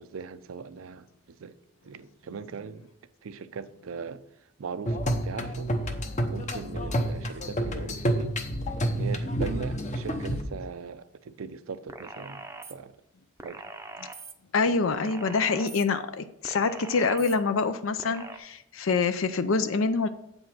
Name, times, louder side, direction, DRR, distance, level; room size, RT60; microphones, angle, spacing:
voice 1, 0.0-1.6 1.8-2.9 3.2-4.2 4.6-5.7 6.3-8.3 9.0-12.4 12.7-13.0 13.4-13.6, right 5 dB, 80° right, 0.5 m, -39 dB
sound 1, 4.9-10.4, equal, 35° left, 0.9 m, -29 dB
sound 2, 11.9-12.7 13.4-14.3 14.9-15.8 16.4-17.4 18.0-18.4, right 3 dB, 15° right, 0.6 m, -42 dB
voice 2, 14.5-20.1, left 4 dB, 70° left, 0.5 m, -26 dB
8.2 x 5.3 x 6.0 m
head